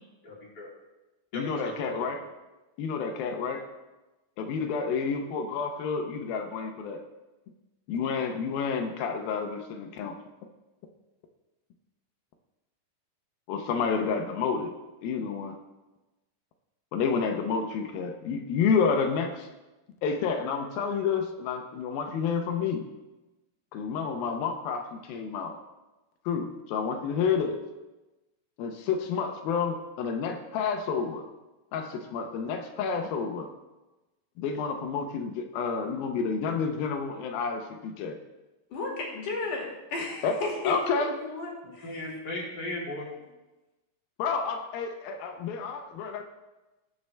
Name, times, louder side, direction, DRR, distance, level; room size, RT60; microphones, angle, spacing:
voice 1, 0.2-0.7 1.3-2.2 41.6-43.1, left 2 dB, 30° left, -5 dB, 3.1 m, -37 dB
voice 2, 1.3-2.2 2.8-3.6 4.4-7.0 7.9-10.2 13.5-14.8 15.0-15.6 16.9-19.5 20.0-22.8 23.7-25.5 26.3-27.6 28.6-31.2 31.7-33.5 34.4-38.2 40.2-41.2 44.2-46.2, left 5 dB, 90° left, 3 dB, 2.7 m, -29 dB
voice 3, 38.7-42.0, left 3 dB, 65° left, -2 dB, 3.6 m, -34 dB
19.0 x 6.9 x 3.3 m, 1.1 s
omnidirectional pair, 4.1 m